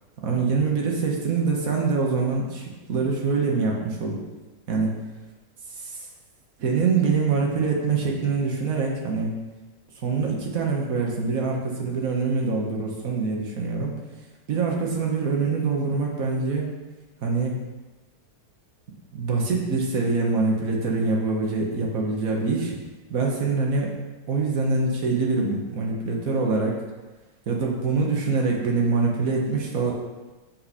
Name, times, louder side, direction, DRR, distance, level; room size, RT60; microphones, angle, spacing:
voice 1, 0.2-4.2 4.7-4.9 5.8-6.0 6.6-9.3 10.0-13.9 14.5-16.7 17.2-17.6 19.1-22.8 23.1-23.9 24.3-26.7 27.5-29.9, right 4 dB, 55° right, -1 dB, 1.6 m, -24 dB
7.4 x 4.4 x 5.6 m, 1.2 s
omnidirectional pair, 1.8 m